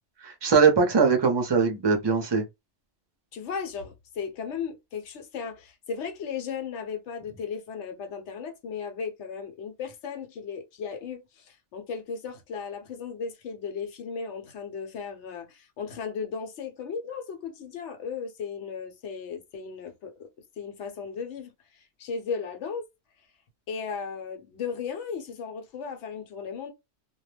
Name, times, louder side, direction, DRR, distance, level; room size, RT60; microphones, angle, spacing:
voice 1, 0.2-2.4, right 5 dB, 30° right, 0.5 m, -21 dB
voice 2, 3.3-20.3 20.6-22.9 23.7-26.7, left 6 dB, 75° left, 0.9 m, -36 dB
2.3 x 2.0 x 3.2 m
omnidirectional pair, 1.2 m